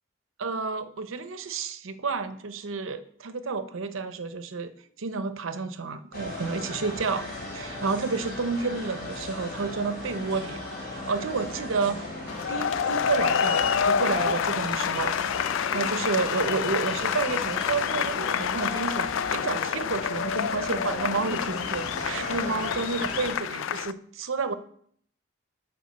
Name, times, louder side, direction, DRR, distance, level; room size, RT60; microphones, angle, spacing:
voice 1, 0.4-4.7 5.0-10.7 10.9-12.1 12.5-15.2 15.7-24.5, right 4 dB, 80° right, 11 dB, 0.7 m, -30 dB
sound 1, 6.1-23.3, left 1 dB, 45° left, 3.8 m, -37 dB
sound 2, 12.3-23.9, left 8 dB, 75° left, 0.3 m, -28 dB
8.1 x 4.7 x 6.6 m, 0.63 s
head